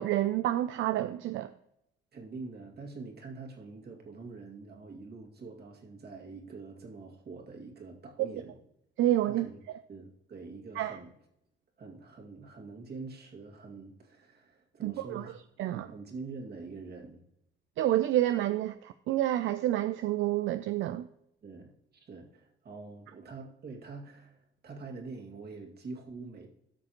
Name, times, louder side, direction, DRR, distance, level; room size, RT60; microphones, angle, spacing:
voice 1, 0.0-1.5 9.0-9.5 10.8-11.0 14.8-15.3 15.6-15.9 17.8-21.1, right 13 dB, 75° right, 0.5 m, -28 dB
voice 2, 2.1-8.6 9.2-9.6 9.9-11.1 11.8-15.4 15.7-17.2 21.4-26.5, right 4 dB, 55° right, 2.3 m, -45 dB
13.5 x 6.2 x 3.0 m
cardioid pair, 90°, 20 cm